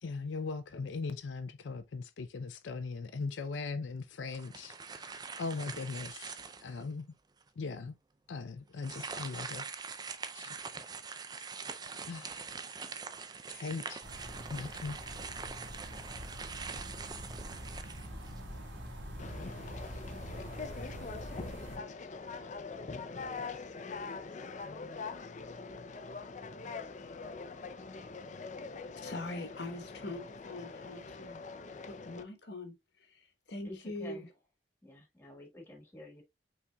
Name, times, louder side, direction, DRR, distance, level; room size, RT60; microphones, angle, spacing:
voice 1, 0.0-7.1 7.6-7.9 8.3-9.7 9.9-10.6 12.1-12.5 13.5-14.0 14.5-15.0, left 4 dB, 90° left, 0.5 m, -40 dB
sound 1, 4.3-6.8 7.4-7.5 8.8-18.6, right 5 dB, 20° right, 0.4 m, -43 dB
sound 2, 14.0-21.8, equal, 90° right, 1.6 m, -45 dB
Conversation, 19.2-32.2, left 4 dB, 40° left, 0.5 m, -43 dB
voice 2, 29.0-31.4 31.8-34.3, left 2 dB, 65° left, 1.1 m, -43 dB
voice 3, 33.6-34.3 34.8-36.2, left 1 dB, 10° left, 1.5 m, -49 dB
5.6 x 4.0 x 2.2 m
head